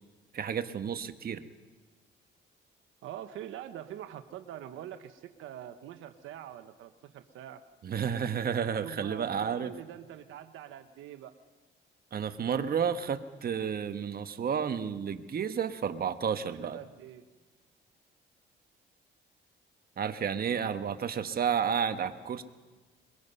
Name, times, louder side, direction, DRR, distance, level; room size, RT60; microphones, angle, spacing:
voice 1, 0.3-1.4 7.8-9.7 12.1-16.8 20.0-22.4, right 7 dB, 50° right, 9 dB, 1.3 m, -31 dB
voice 2, 3.0-7.6 8.8-11.3 16.3-17.2, right 11 dB, 85° right, 9 dB, 1.0 m, -44 dB
22.5 x 22.0 x 5.5 m, 1.3 s
cardioid pair, 90°, 20 cm